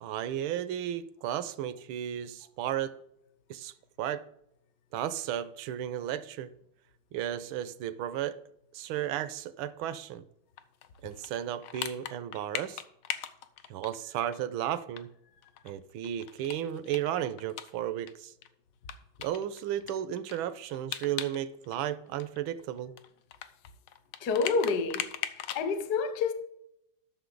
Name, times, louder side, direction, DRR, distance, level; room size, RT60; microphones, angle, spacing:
voice 1, 0.0-2.9 3.5-4.2 4.9-6.5 7.1-8.4 8.7-10.2 11.0-12.8 13.7-15.1 15.6-18.3 19.2-22.9, right 11 dB, 75° right, 1.3 m, -34 dB
sound 1, 10.6-14.4 14.7-14.8 15.0-15.1 15.4-18.1 18.4-18.5 18.9-21.4 21.6-25.7, left 11 dB, 80° left, 1.5 m, -39 dB
voice 2, 24.2-25.1 25.5-26.3, left 4 dB, 60° left, 1.2 m, -28 dB
12.5 x 6.3 x 3.9 m
omnidirectional pair, 2.3 m